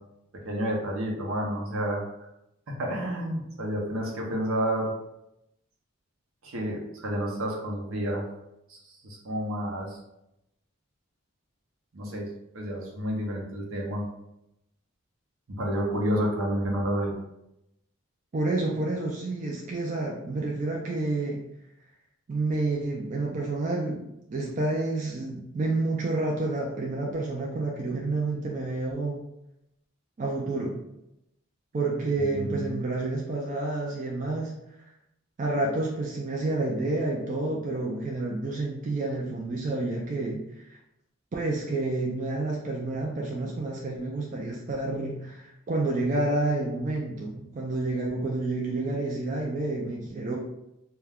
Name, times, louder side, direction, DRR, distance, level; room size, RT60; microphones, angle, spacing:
voice 1, 0.4-2.0 2.8-4.9 6.4-8.3 8.7-10.0 11.9-12.3 12.5-14.0 15.5-17.1 32.3-32.7, equal, 75° right, -1 dB, 0.7 m, -30 dB
voice 2, 18.3-21.4 22.3-24.0 24.3-29.2 30.2-30.8 31.7-34.5 35.4-40.8 41.3-50.4, right 2 dB, 35° right, -2 dB, 0.3 m, -29 dB
2.3 x 2.2 x 3.4 m, 0.86 s
head